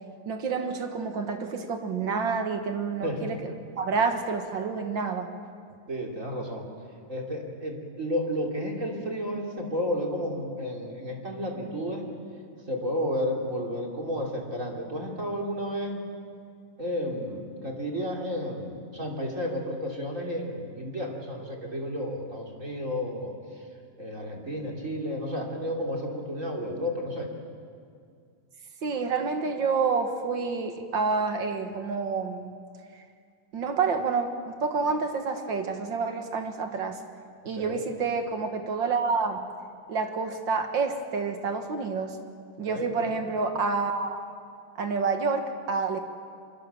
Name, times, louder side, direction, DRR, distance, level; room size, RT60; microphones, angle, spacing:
voice 1, 0.2-5.3 28.8-32.5 33.5-37.0 37.4-39.4 39.9-42.2 42.6-44.2 44.7-46.0, right 4 dB, 50° right, 6 dB, 1.5 m, -28 dB
voice 2, 3.0-3.6 5.9-6.7 7.1-12.0 12.7-16.0 16.8-23.3 24.0-27.3 37.6-37.8 42.6-43.2, equal, 25° right, 0 dB, 3.0 m, -32 dB
25.5 x 24.5 x 7.0 m, 2.2 s
omnidirectional pair, 3.9 m